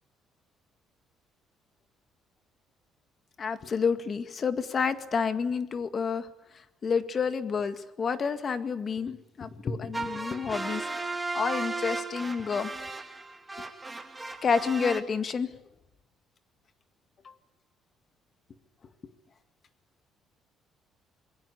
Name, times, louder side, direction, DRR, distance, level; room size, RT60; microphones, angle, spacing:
voice 1, 3.4-6.3 6.8-10.8 11.3-12.7 13.6-13.7 14.4-15.5, left 5 dB, 35° left, 10 dB, 2.0 m, -29 dB
sound 1, 9.9-15.0, right 3 dB, 10° right, 2.5 m, -35 dB
27.0 x 21.5 x 9.7 m, 0.88 s
cardioid pair, 150°, 0 cm